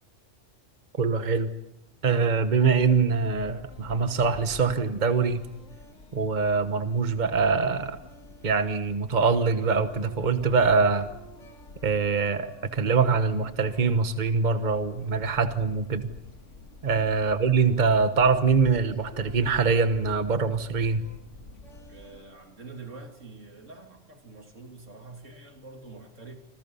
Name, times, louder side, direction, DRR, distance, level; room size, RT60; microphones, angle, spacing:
voice 1, 1.0-1.5 2.0-5.5 6.1-8.0 8.4-11.1 11.8-16.1 16.8-21.0, right 5 dB, 40° right, 1.4 m, -24 dB
sound 1, 2.7-22.3, left 1 dB, 85° left, 2.3 m, -47 dB
voice 2, 21.9-26.4, right 3 dB, 85° right, 3.4 m, -46 dB
28.5 x 26.5 x 5.6 m
omnidirectional pair, 1.2 m